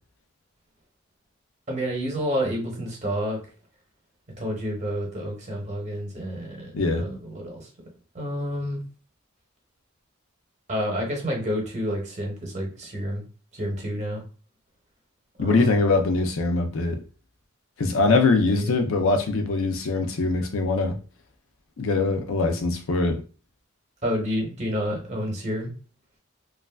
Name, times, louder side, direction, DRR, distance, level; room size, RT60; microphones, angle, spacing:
voice 1, 1.7-3.4 4.4-7.7 8.1-8.8 10.7-13.2 13.5-14.2 15.4-15.7 18.2-18.8 24.0-25.7, equal, 35° right, 0 dB, 0.8 m, -29 dB
voice 2, 6.7-7.1 15.4-17.0 17.8-21.0 21.8-23.2, left 3 dB, 70° left, 6 dB, 0.5 m, -22 dB
3.0 x 2.3 x 2.3 m, 0.36 s
head